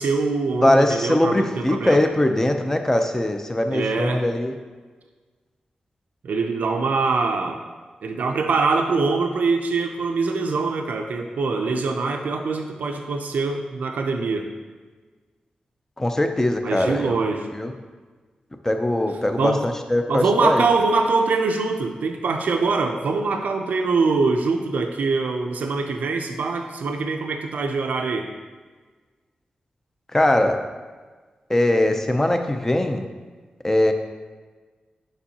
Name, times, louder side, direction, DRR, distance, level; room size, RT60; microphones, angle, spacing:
voice 1, 0.0-2.0 3.7-4.2 6.2-7.6 8.0-14.5 16.6-17.5 19.4-19.6 20.1-28.3, right 4 dB, 85° right, 4 dB, 0.5 m, -23 dB
voice 2, 0.6-4.6 16.0-17.2 17.5-17.7 18.6-20.7 30.1-30.6 31.5-33.1 33.6-33.9, left 1 dB, 15° left, 6 dB, 0.5 m, -21 dB
7.1 x 5.3 x 2.8 m, 1.4 s
wide cardioid pair, 105°, 3 cm